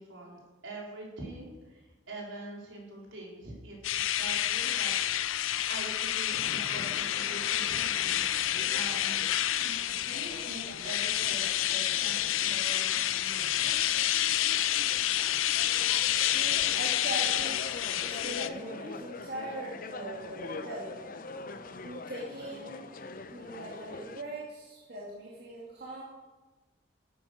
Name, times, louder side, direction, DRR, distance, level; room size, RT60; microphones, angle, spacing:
voice 1, 0.0-5.3 5.7-8.2 8.7-9.3 9.6-13.8, right 2 dB, 70° right, -3 dB, 4.0 m, -44 dB
sound 1, 3.8-18.5, left 12 dB, 80° left, 0.6 m, -29 dB
sound 2, 6.3-24.2, left 3 dB, 45° left, 0.6 m, -44 dB
voice 2, 16.3-17.6 18.0-21.1 21.8-22.8 23.3-26.0, right 1 dB, 50° right, -5 dB, 2.4 m, -40 dB
12.5 x 8.6 x 6.6 m, 1.2 s
head